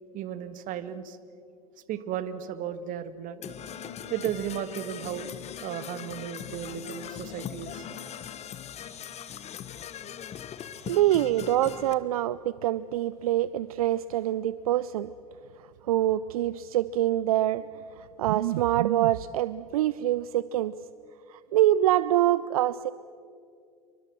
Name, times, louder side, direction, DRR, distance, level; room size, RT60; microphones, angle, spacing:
voice 1, 0.1-1.2 1.9-3.4 4.1-5.3 5.6-7.9 8.8-9.0, right 9 dB, 45° right, 12 dB, 1.7 m, -35 dB
Singing, 3.4-8.2, left 5 dB, 85° left, 2.5 m, -50 dB
Percussion / Brass instrument, 3.4-11.9, left 9 dB, 35° left, 1.4 m, -41 dB
voice 2, 10.9-15.1 15.9-17.6 18.0-20.7 21.3-22.9, right 13 dB, 70° right, 17 dB, 0.5 m, -25 dB
28.0 x 24.0 x 6.2 m, 2.4 s
figure-of-eight pair, 80°, 19 cm